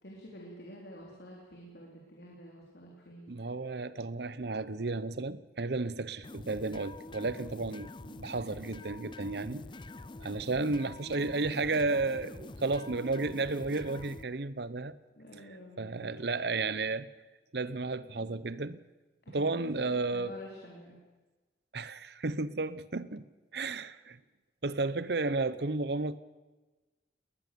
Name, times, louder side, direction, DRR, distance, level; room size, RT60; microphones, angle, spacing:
voice 1, 0.0-3.3 10.5-10.9 15.2-16.2 19.3-19.6 20.1-21.0, equal, 65° left, 3.8 m, -49 dB
voice 2, 3.3-9.6 10.2-14.9 15.8-17.1 17.5-18.8 19.3-20.4 21.7-23.3 23.5-24.2 24.6-26.2, right 3 dB, 65° right, 0.8 m, -33 dB
sound 1, 6.2-14.2, left 2 dB, 25° left, 0.6 m, -46 dB
20.0 x 20.0 x 6.9 m
head